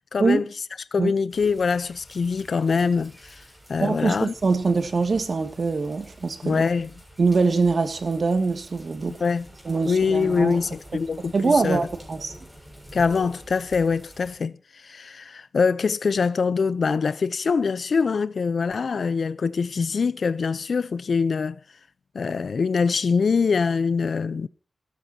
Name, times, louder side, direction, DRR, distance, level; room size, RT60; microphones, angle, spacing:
voice 1, 0.1-0.4 0.9-3.4 3.7-4.3 6.4-6.9 9.2-9.5 9.8-11.9 12.9-21.6 22.1-24.5, left 5 dB, 65° left, 0.8 m, -24 dB
sound 1, 1.3-14.4, equal, 5° right, 6.9 m, -47 dB
voice 2, 3.8-6.6 7.2-9.2 9.7-10.6 11.3-12.3, right 4 dB, 55° right, 2.5 m, -23 dB
29.5 x 13.5 x 3.0 m
wide cardioid pair, 110°, 0 cm